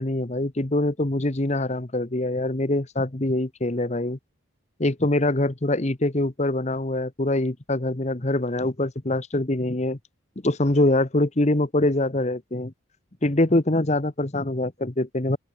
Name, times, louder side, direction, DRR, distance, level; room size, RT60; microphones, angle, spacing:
voice 1, 0.0-4.2 4.8-10.0 10.4-12.7 13.2-15.4, left 1 dB, 35° left, 1.2 m, -24 dB
open air
head